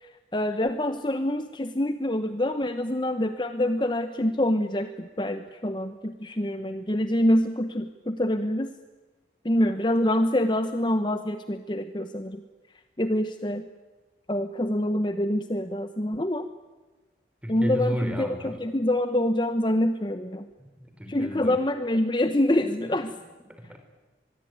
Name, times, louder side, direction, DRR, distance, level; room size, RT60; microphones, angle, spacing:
voice 1, 0.0-8.7 9.4-12.4 13.0-13.6 14.3-16.5 17.5-20.5 21.1-23.1, left 1 dB, 25° left, 9 dB, 1.0 m, -26 dB
voice 2, 17.4-18.6 20.6-21.6 23.5-23.8, equal, 5° right, 6 dB, 3.9 m, -33 dB
24.0 x 22.0 x 9.5 m, 1.2 s
head